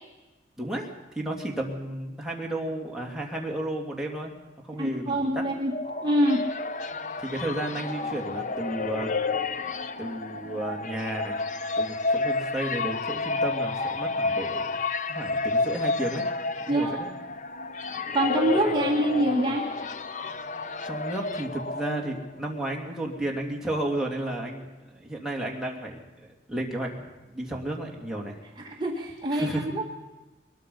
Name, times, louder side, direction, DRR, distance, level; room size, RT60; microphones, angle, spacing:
voice 1, 0.6-0.9 1.1-4.3 4.6-5.4 7.2-9.1 10.0-11.4 11.8-14.8 15.1-16.2 16.7-17.1 20.8-28.4 29.3-29.7, right 1 dB, 5° right, -1 dB, 2.7 m, -33 dB
voice 2, 4.8-5.7 6.0-6.4 16.7-17.0 18.1-19.6 28.6-29.8, right 1 dB, 25° right, -1 dB, 1.7 m, -25 dB
sound 1, 5.4-22.4, left 3 dB, 45° left, 0.7 m, -30 dB
22.0 x 21.0 x 5.6 m, 1.1 s
head